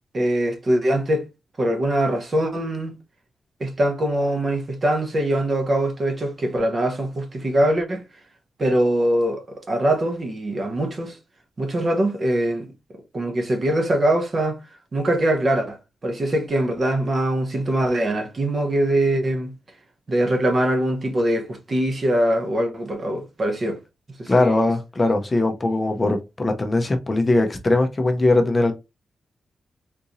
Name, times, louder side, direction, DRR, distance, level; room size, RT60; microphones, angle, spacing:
voice 1, 0.1-1.3 1.6-3.0 3.6-8.0 8.6-11.2 11.6-12.7 13.1-14.6 14.9-19.5 20.1-23.8 24.2-24.6, right 1 dB, 35° right, 0.8 m, -22 dB
voice 2, 24.3-28.7, left 2 dB, 20° left, 0.5 m, -20 dB
3.7 x 2.6 x 2.8 m
wide cardioid pair, 150°, 0 cm